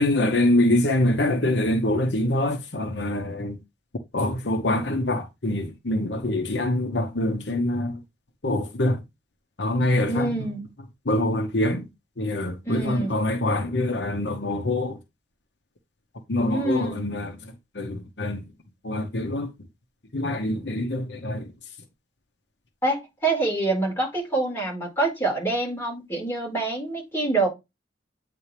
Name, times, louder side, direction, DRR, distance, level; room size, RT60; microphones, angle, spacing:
voice 1, 0.0-3.6 4.1-8.0 8.4-9.0 9.6-10.5 11.1-11.9 12.2-15.0 16.3-18.4 18.8-19.5 20.1-21.5, left 1 dB, 80° left, 1.1 m, -25 dB
voice 2, 10.1-10.6 12.6-13.1 16.5-17.0 22.8-27.5, right 2 dB, 15° left, 4.5 m, -26 dB
8.7 x 3.9 x 3.4 m
head